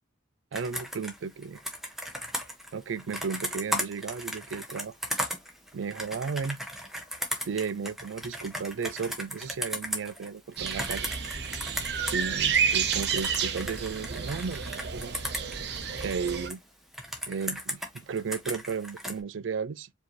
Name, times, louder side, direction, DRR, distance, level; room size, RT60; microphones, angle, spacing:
Computer keyboard, 0.5-12.2 12.5-16.5 16.9-19.2, equal, ahead, 0.8 m, -36 dB
voice 1, 0.5-1.6 2.7-5.0 5.7-6.6 7.5-11.1 12.0-15.2 15.7-16.6 17.3-19.9, right 5 dB, 90° right, 0.4 m, -34 dB
sound 1, 10.6-16.5, right 7 dB, 60° right, 0.7 m, -30 dB
4.9 x 2.8 x 3.1 m
head